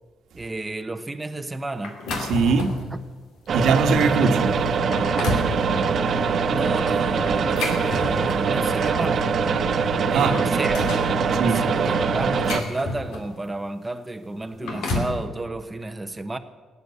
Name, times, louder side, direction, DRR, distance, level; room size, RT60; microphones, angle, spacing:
voice 1, 0.3-2.0 6.5-9.3 10.1-16.4, right 2 dB, 15° right, 0.9 m, -32 dB
sound 1, 1.8-2.9 3.4-3.6 4.2-4.3 4.7-5.6 7.3-8.6 9.6-9.7 10.1-11.1 12.0-13.4 14.4-15.2, left 2 dB, 85° left, 2.9 m, -30 dB
voice 2, 2.2-2.8 3.5-4.6 10.1-10.4 11.4-11.7, right 4 dB, 75° right, 1.3 m, -21 dB
sound 2, 3.5-12.6, right 5 dB, 55° right, 1.0 m, -23 dB
16.5 x 9.5 x 8.2 m
cardioid pair, 90°, 0 cm